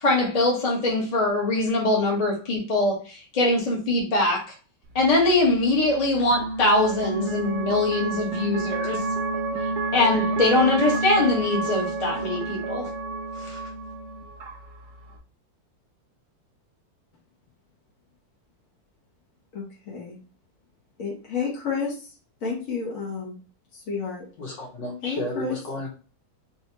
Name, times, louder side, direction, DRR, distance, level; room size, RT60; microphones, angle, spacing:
voice 1, 0.0-4.5 4.9-9.0 9.9-12.9 13.4-13.6, left 2 dB, 25° left, 1.1 m, -22 dB
sound 1, 4.8-15.2, right 3 dB, 55° right, 0.7 m, -30 dB
voice 2, 19.5-20.2 21.0-22.1 22.4-23.4 23.7-24.3 25.0-25.6, left 5 dB, 50° left, 1.4 m, -31 dB
voice 3, 24.4-25.9, left 1 dB, 65° left, 2.1 m, -33 dB
4.4 x 3.1 x 2.8 m
omnidirectional pair, 2.1 m